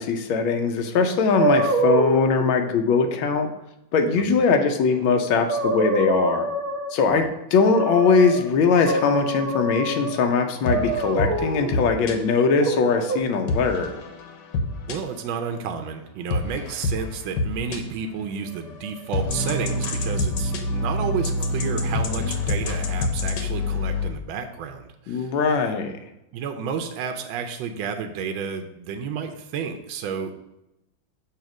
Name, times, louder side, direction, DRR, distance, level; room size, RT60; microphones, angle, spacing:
voice 1, 0.0-3.5 3.9-6.5 6.9-13.9 25.1-26.0, left 5 dB, 90° left, 5 dB, 1.4 m, -21 dB
sound 1, 1.3-2.5 4.9-5.0 5.3-7.0 7.6-8.4 8.8-10.2 10.7-11.7 12.6-13.2, right 2 dB, 45° right, 1.1 m, -25 dB
sound 2, 10.7-12.1 13.5-15.3 16.3-17.8 18.5-24.1, left 2 dB, 70° left, 1.4 m, -26 dB
voice 2, 14.9-25.3 26.3-30.4, right 6 dB, 85° right, 5 dB, 1.4 m, -31 dB
7.2 x 2.8 x 5.9 m, 0.90 s
omnidirectional pair, 2.1 m